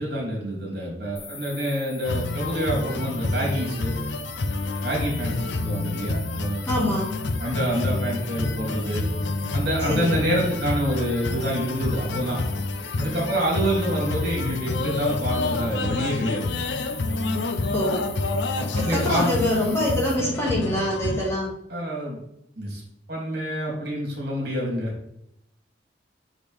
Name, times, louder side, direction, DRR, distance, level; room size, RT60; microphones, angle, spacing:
voice 1, 0.0-3.9 4.8-6.6 7.4-9.0 9.5-12.4 13.0-16.5 18.5-19.3 21.7-22.2 22.6-22.8 23.1-24.9, equal, 60° right, -3 dB, 2.7 m, -27 dB
sound 1, 1.2-20.2, left 5 dB, 90° left, 1.6 m, -42 dB
sound 2, 2.0-21.3, left 2 dB, 70° left, 0.5 m, -28 dB
voice 2, 6.7-7.2 9.9-10.1 17.7-18.0 18.7-21.5, left 1 dB, 15° left, -5 dB, 1.9 m, -25 dB
6.3 x 5.2 x 3.4 m, 0.78 s
head